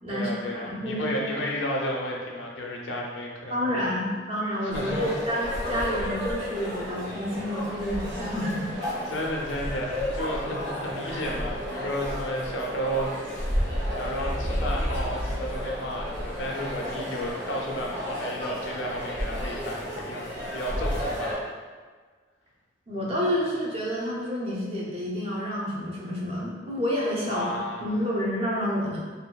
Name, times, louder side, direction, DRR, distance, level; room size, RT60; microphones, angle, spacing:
voice 1, 0.1-4.0 4.6-5.1 9.1-21.4 27.3-27.8, equal, 80° left, -2 dB, 0.5 m, -33 dB
voice 2, 0.7-1.2 3.5-8.8 22.9-27.5 27.8-29.0, equal, 35° right, -5 dB, 0.5 m, -29 dB
sound 1, 4.7-21.3, equal, 70° right, 1.1 m, -32 dB
2.8 x 2.6 x 2.2 m, 1.5 s
head